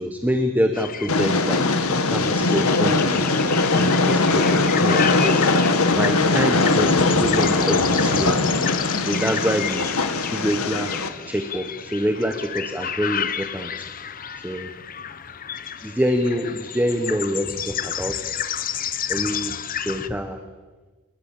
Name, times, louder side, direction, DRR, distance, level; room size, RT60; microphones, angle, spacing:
voice 1, 0.0-1.6 2.0-3.4 3.8-5.5 5.9-8.5 8.9-9.9 10.3-10.9 11.3-13.7 14.3-14.7 15.8-18.4 19.1-19.5 19.8-20.4, equal, 10° right, 6 dB, 1.4 m, -26 dB
sound 1, 0.7-20.1, left 8 dB, 40° left, 1.0 m, -31 dB
Train, 1.1-11.1, left 3 dB, 85° left, 2.0 m, -20 dB
26.5 x 21.0 x 7.6 m, 1.3 s
head